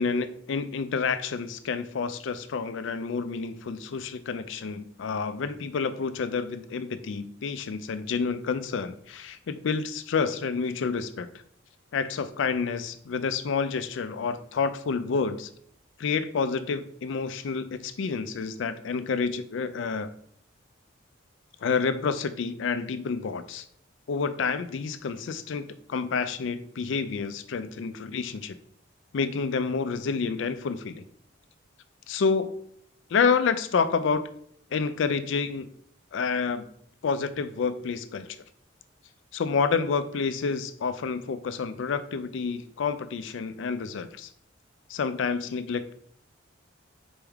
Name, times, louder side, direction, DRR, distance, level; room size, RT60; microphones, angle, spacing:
voice 1, 0.0-11.3 11.9-15.5 16.0-20.1 21.6-23.6 24.1-28.6 29.1-31.0 32.1-32.5 33.1-34.2 34.7-35.7 36.1-36.7 37.0-38.3 39.3-44.3 44.9-45.9, left 5 dB, 70° left, 12 dB, 0.4 m, -29 dB
4.4 x 3.4 x 3.5 m, 0.66 s
head